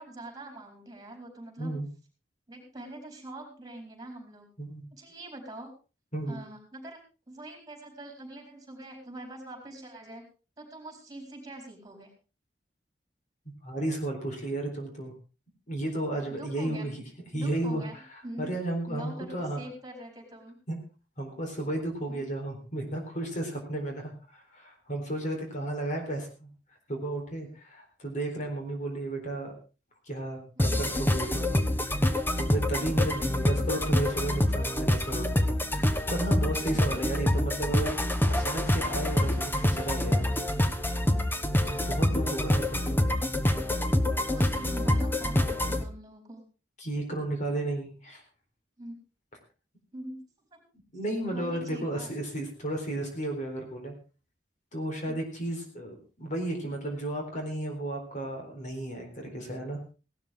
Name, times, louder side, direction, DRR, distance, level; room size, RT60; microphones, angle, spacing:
voice 1, 0.0-1.8 2.5-4.5 4.9-5.7 6.3-7.0 7.3-10.3 10.6-12.1 16.3-16.9 17.3-17.9 18.2-18.5 18.9-20.6 22.1-22.2 30.6-30.8 32.8-33.1 36.7-37.0 44.3-46.4 48.8-48.9 49.9-50.2 50.5-50.6 51.3-52.1, right 1 dB, 25° right, 3 dB, 4.6 m, -43 dB
voice 2, 1.6-1.9 4.6-4.9 6.1-6.4 13.6-15.1 15.7-17.0 17.3-17.8 18.4-19.6 20.7-20.8 21.2-26.5 26.9-29.5 30.1-38.0 38.3-40.3 41.6-43.1 46.8-48.2 50.9-53.9 54.7-59.8, right 1 dB, 45° left, 3 dB, 4.0 m, -33 dB
sound 1, 30.6-45.8, left 1 dB, 15° left, 1.1 m, -26 dB
17.5 x 12.5 x 3.7 m, 0.33 s
head